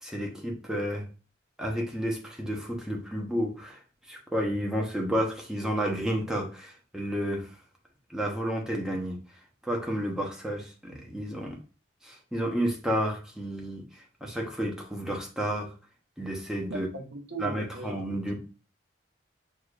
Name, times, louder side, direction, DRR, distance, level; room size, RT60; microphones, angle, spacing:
voice 1, 0.0-1.1 1.6-3.8 4.1-7.5 8.1-9.2 9.6-11.6 12.0-15.7 16.2-16.9 17.4-18.3, equal, 5° right, 0 dB, 0.8 m, -31 dB
voice 2, 16.7-18.3, right 2 dB, 70° right, 3 dB, 0.8 m, -39 dB
6.4 x 2.5 x 2.4 m, 0.34 s
head